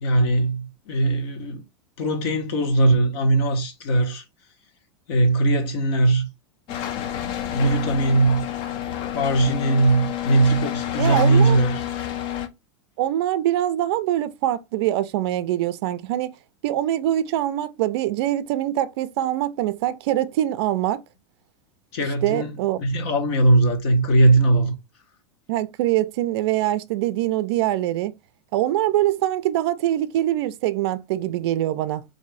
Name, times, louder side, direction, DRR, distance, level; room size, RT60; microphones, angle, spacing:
voice 1, 0.0-1.6 2.0-4.2 5.1-6.3 7.5-8.4 9.1-11.8 21.9-22.5 22.8-24.7, right 2 dB, 60° left, 1.0 m, -20 dB
sound 1, 6.7-12.5, left 11 dB, 30° left, 0.4 m, -29 dB
voice 2, 11.0-11.6 13.0-16.3 16.6-21.0 22.2-22.8 25.5-28.1 28.5-32.0, right 13 dB, 55° right, 0.4 m, -23 dB
3.5 x 2.6 x 3.2 m
supercardioid pair, 155°, 15 cm